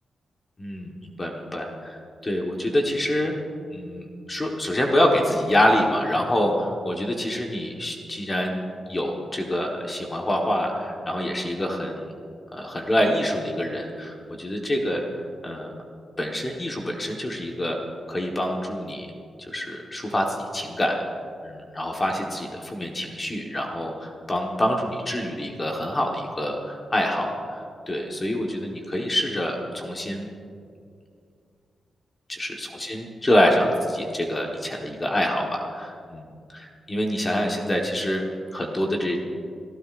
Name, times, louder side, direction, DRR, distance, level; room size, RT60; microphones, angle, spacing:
voice 1, 0.6-3.3 3.7-8.6 8.9-12.0 12.5-15.7 16.2-17.8 18.1-19.1 19.5-21.0 21.4-30.3 32.3-36.3 36.5-38.2 38.5-39.2, left 1 dB, 20° left, 0 dB, 1.2 m, -26 dB
29.0 x 15.0 x 2.5 m, 2.3 s
wide cardioid pair, 175°, 0 cm